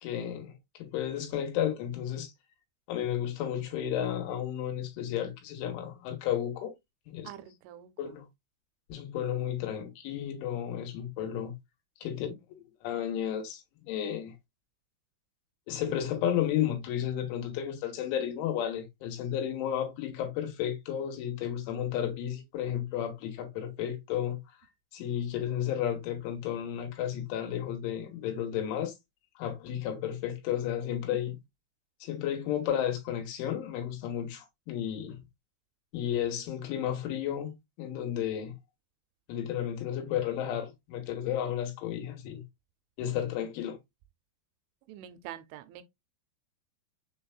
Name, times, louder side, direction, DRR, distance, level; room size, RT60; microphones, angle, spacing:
voice 1, 0.0-2.3 2.9-6.7 7.1-7.3 8.0-8.3 8.9-11.5 12.0-12.3 12.8-14.3 15.7-24.4 24.9-28.9 29.4-31.4 32.0-35.2 35.9-38.6 39.3-42.4 43.0-43.8, left 10 dB, 90° left, 3.5 m, -33 dB
voice 2, 7.2-8.2 25.1-25.2 31.3-31.4 44.9-45.8, right 12 dB, 85° right, 2.9 m, -46 dB
6.9 x 3.3 x 2.3 m
omnidirectional pair, 5.4 m